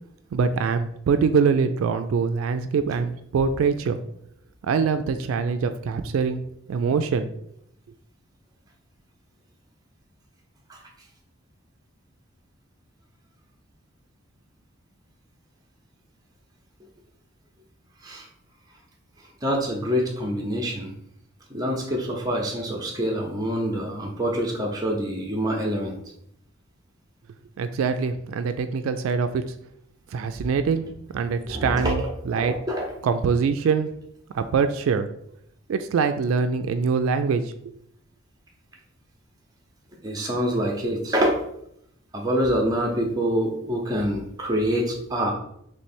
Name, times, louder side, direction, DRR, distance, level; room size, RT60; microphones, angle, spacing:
voice 1, 0.3-4.0 4.6-6.4 6.7-7.3 27.6-29.4 30.1-32.5 33.0-33.9 34.3-35.1 35.7-37.8, right 5 dB, 80° right, 9 dB, 0.3 m, -24 dB
voice 2, 19.4-20.9 21.5-26.0 31.5-32.9 40.0-41.4 42.1-45.3, equal, 20° right, 0 dB, 0.7 m, -26 dB
3.2 x 3.1 x 4.4 m, 0.73 s
head